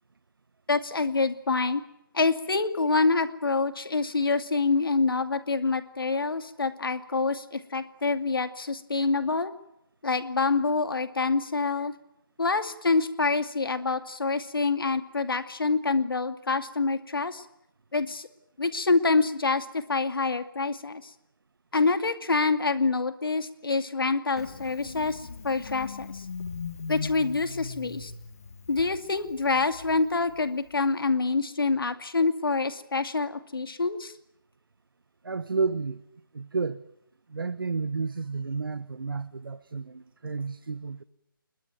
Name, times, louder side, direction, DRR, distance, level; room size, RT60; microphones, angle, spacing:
voice 1, 0.7-1.8 2.1-9.5 10.0-11.9 12.4-17.4 17.9-18.3 18.6-21.0 21.7-26.1 26.9-28.1 28.7-34.1, left 3 dB, 70° left, 10 dB, 2.4 m, -26 dB
Engine starting, 24.4-30.8, left 5 dB, 40° left, 1.9 m, -40 dB
voice 2, 35.2-36.0 36.3-36.8 37.3-41.0, right 4 dB, 70° right, 12 dB, 1.3 m, -31 dB
26.0 x 22.0 x 9.1 m, 0.80 s
hypercardioid pair, 170°, 12 cm